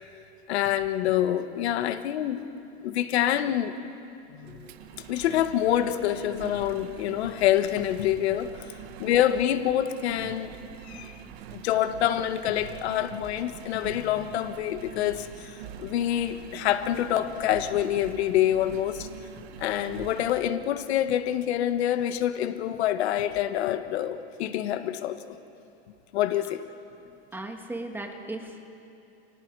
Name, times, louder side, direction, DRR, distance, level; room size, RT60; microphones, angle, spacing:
voice 1, 0.5-2.4 2.8-3.7 4.3-4.7 5.1-8.5 9.0-10.5 10.9-11.1 11.5-19.1 19.6-25.4 26.1-26.6, left 11 dB, 80° left, 9 dB, 1.6 m, -26 dB
Engine, 4.4-20.5, right 9 dB, 70° right, 1.7 m, -44 dB
voice 2, 10.9-11.4 27.1-28.7, right 2 dB, 5° right, 3 dB, 1.8 m, -39 dB
30.0 x 29.5 x 4.8 m, 2.8 s
supercardioid pair, 155°, 32 cm